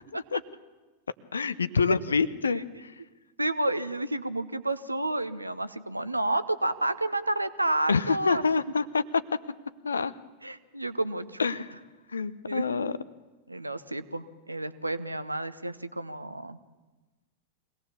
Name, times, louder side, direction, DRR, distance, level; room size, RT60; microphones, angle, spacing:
voice 1, 1.3-2.9 7.9-9.0 9.8-10.1 11.4-11.7 12.1-12.9, left 5 dB, 75° left, 17 dB, 0.6 m, -27 dB
voice 2, 3.4-8.4 10.4-11.5 12.5-12.7 13.5-16.6, right 1 dB, 85° right, 13 dB, 0.8 m, -30 dB
23.5 x 17.5 x 7.0 m, 1.2 s
figure-of-eight pair, 90°, 0 cm